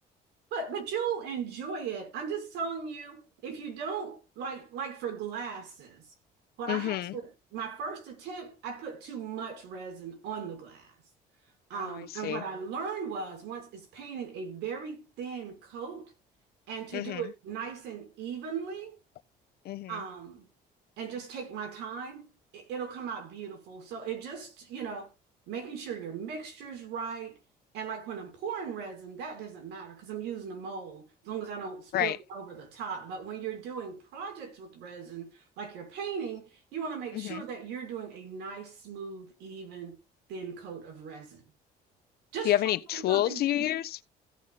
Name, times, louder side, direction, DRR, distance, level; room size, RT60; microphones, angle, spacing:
voice 1, 0.5-6.1 6.6-10.9 11.7-16.1 16.7-19.0 19.9-20.5 21.0-25.1 25.5-27.4 27.7-40.0 40.3-41.5 42.3-42.6 43.0-43.7, right 6 dB, 85° right, 6.1 m, -38 dB
voice 2, 6.7-7.1 12.2-12.4 16.9-17.2 19.7-19.9 31.9-32.2 37.1-37.4 42.4-44.0, left 13 dB, 65° left, 1.0 m, -28 dB
16.5 x 6.3 x 2.5 m
cardioid pair, 110°, 17 cm